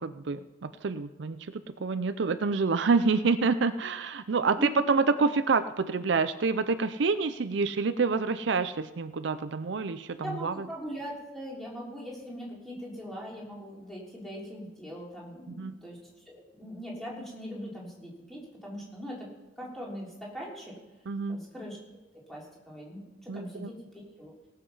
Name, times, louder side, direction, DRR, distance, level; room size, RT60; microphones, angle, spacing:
voice 1, 0.0-10.7 15.6-15.7 21.1-21.4 23.3-23.7, right 4 dB, 70° right, 12 dB, 0.5 m, -27 dB
voice 2, 10.2-16.0 16.3-19.3 19.6-20.8 21.3-21.8 22.3-24.3, equal, ahead, -5 dB, 3.4 m, -41 dB
17.5 x 7.5 x 5.5 m, 1.1 s
head